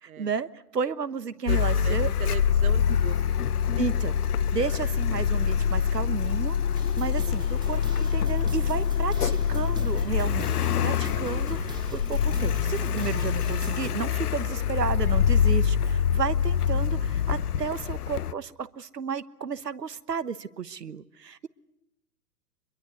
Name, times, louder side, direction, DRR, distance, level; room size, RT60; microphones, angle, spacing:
voice 1, 0.0-2.1 3.8-4.2 4.5-6.6 7.0-21.5, right 6 dB, 85° right, 15 dB, 1.3 m, -32 dB
Car, 1.5-18.3, left 8 dB, 70° left, 0.9 m, -25 dB
voice 2, 1.8-3.4 7.6-7.7, right 11 dB, 60° right, 18 dB, 1.1 m, -38 dB
sound 1, 6.7-13.9, right 2 dB, 10° right, 1.6 m, -41 dB
24.0 x 22.5 x 9.5 m, 0.89 s
figure-of-eight pair, 125°, 47 cm